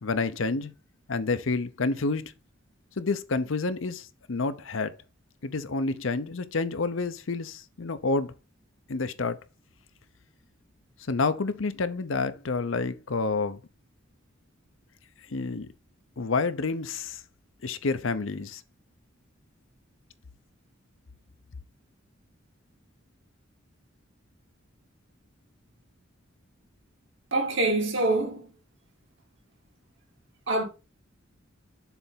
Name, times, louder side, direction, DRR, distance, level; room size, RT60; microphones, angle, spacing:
voice 1, 0.0-0.7 1.1-2.2 3.0-4.9 5.4-8.3 8.9-9.4 11.1-13.6 15.3-15.7 16.2-17.2 17.6-18.6, left 3 dB, 70° left, 0.7 m, -29 dB
voice 2, 27.3-28.5 30.5-30.6, right 2 dB, 65° right, 2.2 m, -25 dB
7.0 x 3.4 x 5.6 m
head